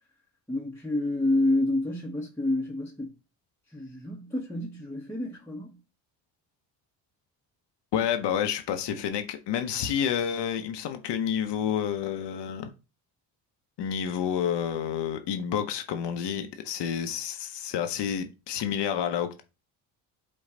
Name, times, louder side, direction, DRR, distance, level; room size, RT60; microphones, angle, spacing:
voice 1, 0.5-3.1 3.7-5.8, left 2 dB, 5° left, 0.9 m, -28 dB
voice 2, 7.9-12.7 13.8-19.4, left 8 dB, 55° left, 0.7 m, -29 dB
5.2 x 2.3 x 3.7 m
hypercardioid pair, 65°, 49 cm